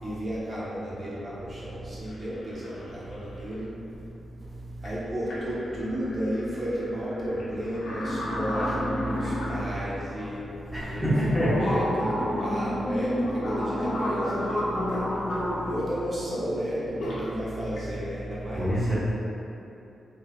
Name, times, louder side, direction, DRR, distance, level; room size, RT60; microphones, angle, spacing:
voice 1, 0.0-3.7 4.8-11.1 11.4-15.1 15.6-18.9, equal, 35° right, -8 dB, 1.1 m, -33 dB
sound 1, 2.1-2.2 2.4-3.2 4.8-4.9 5.3-9.8 10.3-10.4 11.0-15.9 16.7-17.2 17.6-17.9, left 1 dB, 80° left, 0.7 m, -31 dB
voice 2, 10.7-11.7 18.5-19.0, equal, ahead, -10 dB, 1.1 m, -25 dB
3.8 x 3.4 x 2.3 m, 2.8 s
cardioid pair, 90°, 0 cm